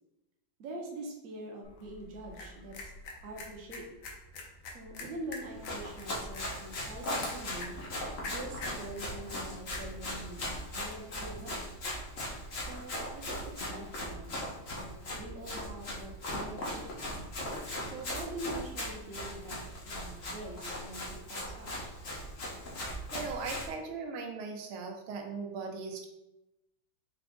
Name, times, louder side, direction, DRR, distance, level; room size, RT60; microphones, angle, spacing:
voice 1, 0.6-2.9 3.2-3.9 4.7-7.8 8.3-10.4 10.7-11.7 12.6-14.4 14.7-16.9 17.8-19.6 19.9-21.7, right 1 dB, 55° right, -1 dB, 1.0 m, -44 dB
sound 1, 1.6-11.1, left 2 dB, 70° left, 1.5 m, -48 dB
Run, 5.5-23.7, left 1 dB, 50° left, 0.7 m, -39 dB
voice 2, 23.1-26.1, right 4 dB, 85° right, 3 dB, 1.5 m, -38 dB
4.8 x 2.4 x 3.5 m, 0.93 s
omnidirectional pair, 2.3 m